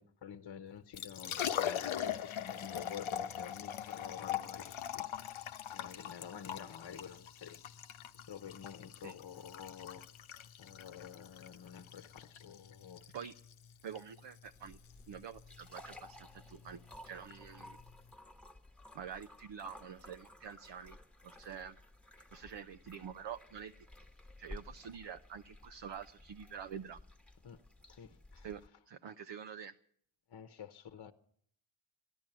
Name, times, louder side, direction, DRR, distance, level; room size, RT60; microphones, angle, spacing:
voice 1, 0.0-7.7 8.3-10.1 10.6-13.0 27.4-27.6 27.9-28.5 30.3-31.1, left 8 dB, 55° left, 1.0 m, -49 dB
Liquid, 0.8-18.1, left 10 dB, 90° left, 0.8 m, -42 dB
voice 2, 13.8-14.8 15.1-17.8 18.9-21.0 21.2-21.8 22.3-23.9 24.4-27.0 28.4-28.6 28.9-29.7, right 7 dB, 65° right, 0.7 m, -47 dB
sound 1, 14.4-28.7, left 1 dB, ahead, 1.2 m, -55 dB
14.5 x 10.5 x 8.9 m
cardioid pair, 60°, 47 cm